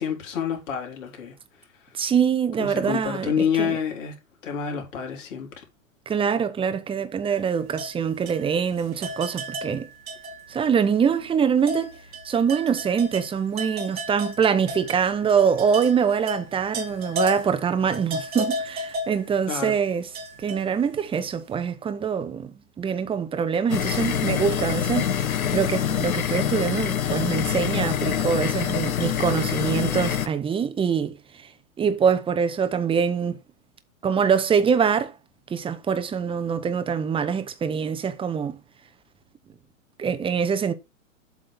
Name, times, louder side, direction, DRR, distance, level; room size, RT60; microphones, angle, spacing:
voice 1, 0.0-1.3 2.6-4.1 4.4-5.6 19.5-19.8, left 7 dB, 65° left, 3.1 m, -28 dB
voice 2, 1.9-3.3 3.6-3.8 6.1-9.9 10.5-11.9 12.2-20.1 20.4-25.1 25.5-31.2 31.8-33.4 34.0-35.1 35.5-38.6 40.0-40.7, right 7 dB, 15° right, 0.8 m, -24 dB
sound 1, 7.2-10.7 11.0-11.1 11.6-21.2, equal, 85° right, 1.6 m, -35 dB
sound 2, 23.7-30.3, left 9 dB, 90° left, 1.0 m, -25 dB
7.8 x 3.8 x 5.9 m
hypercardioid pair, 115°, 41 cm